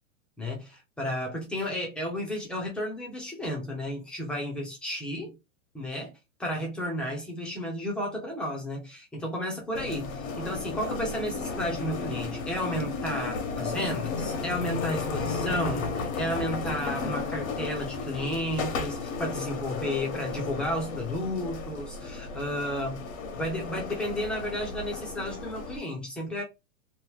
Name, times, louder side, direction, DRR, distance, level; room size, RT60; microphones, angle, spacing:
voice 1, 0.4-5.4 5.7-6.1 6.4-23.0 23.3-26.4, left 1 dB, ahead, 0.5 m, -32 dB
sound 1, 9.7-25.8, left 4 dB, 70° left, 1.1 m, -34 dB
3.0 x 2.1 x 3.5 m
hypercardioid pair, 145°, 41 cm